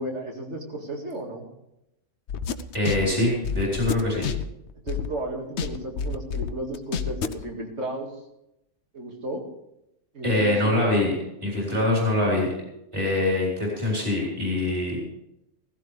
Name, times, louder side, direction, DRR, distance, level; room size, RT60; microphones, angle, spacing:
voice 1, 0.0-1.5 4.8-8.1 8.9-9.5 10.1-10.9, right 1 dB, 60° right, 1 dB, 2.5 m, -33 dB
sound 1, 2.3-5.2 5.6-7.4, left 6 dB, 60° left, 1.0 m, -29 dB
voice 2, 2.7-4.3 10.2-11.1 11.4-12.5 12.9-15.0, left 2 dB, 20° right, -3 dB, 4.2 m, -24 dB
16.5 x 15.5 x 3.4 m, 0.86 s
omnidirectional pair, 1.3 m